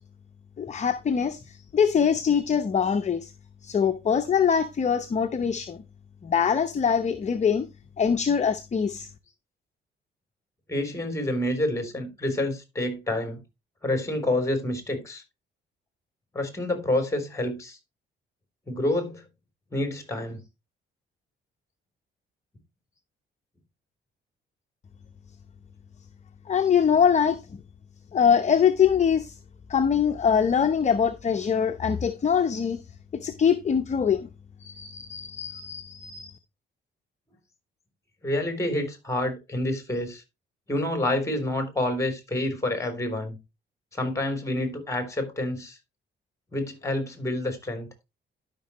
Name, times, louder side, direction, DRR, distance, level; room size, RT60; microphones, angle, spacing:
voice 1, 0.6-3.3 3.6-5.8 6.2-7.7 8.0-9.1 26.5-27.6 28.1-29.4 29.7-32.8 33.2-34.3 34.6-36.4, left 7 dB, 35° left, 0.8 m, -23 dB
voice 2, 10.7-13.4 13.8-15.2 16.3-17.8 18.7-19.2 19.7-20.4 38.2-40.2 40.7-43.4 43.9-45.8 46.5-47.9, left 1 dB, 15° left, 3.7 m, -28 dB
12.5 x 6.1 x 3.1 m
cardioid pair, 90°, 20 cm